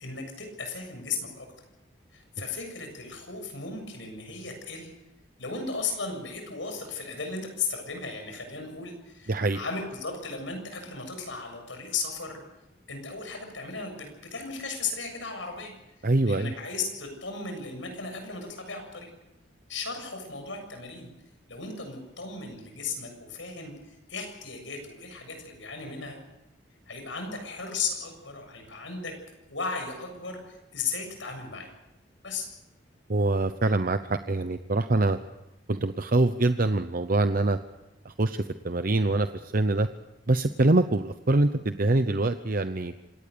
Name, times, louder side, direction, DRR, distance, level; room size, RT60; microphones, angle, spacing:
voice 1, 0.0-1.5 2.1-4.9 5.4-12.4 12.9-15.7 16.3-19.1 19.7-21.1 21.5-26.2 26.9-29.1 29.5-31.7 32.2-32.5, left 4 dB, 80° left, 5 dB, 7.3 m, -36 dB
voice 2, 9.3-9.6 16.0-16.5 33.1-35.2 35.7-37.6 38.0-39.9 40.3-42.9, right 2 dB, 50° right, 10 dB, 0.8 m, -24 dB
26.5 x 18.5 x 6.9 m, 0.94 s
head